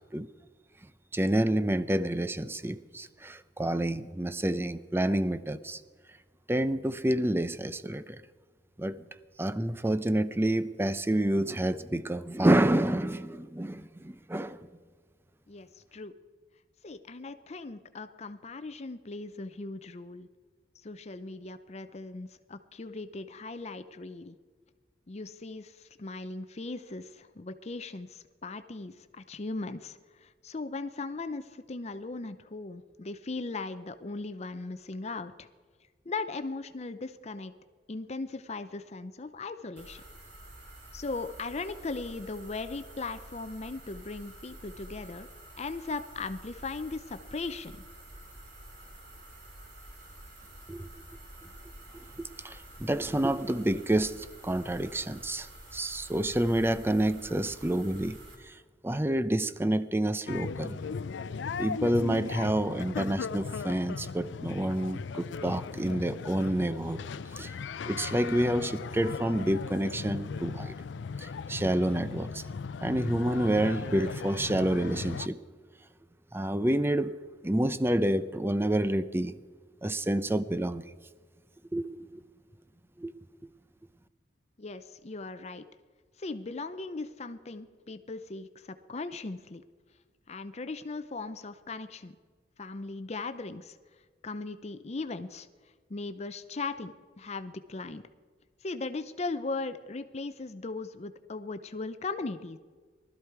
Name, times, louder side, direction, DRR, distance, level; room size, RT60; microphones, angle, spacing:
voice 1, 1.1-5.8 6.5-8.2 8.8-9.0 9.4-14.6 50.7-50.9 52.2-55.5 55.7-58.2 58.5-58.6 58.8-60.8 61.6-67.0 67.4-67.5 67.9-70.7 71.2-72.4 72.8-75.4 76.3-77.1 77.4-79.4 79.8-80.8 81.7-82.2 83.0-83.1, right 1 dB, 15° right, 0.5 m, -28 dB
voice 2, 15.5-16.1 16.8-20.3 20.8-24.4 25.1-35.5 36.1-37.5 37.9-40.0 40.9-45.3 45.6-47.8 84.6-85.7 86.2-89.6 90.3-92.2 92.6-93.8 94.2-95.5 95.9-98.0 98.6-102.6, left 3 dB, 40° left, 0.6 m, -38 dB
sound 1, 39.8-58.3, right 1 dB, 70° right, 3.5 m, -49 dB
sound 2, 60.3-75.3, left 5 dB, 85° left, 0.4 m, -37 dB
19.5 x 13.0 x 4.7 m
head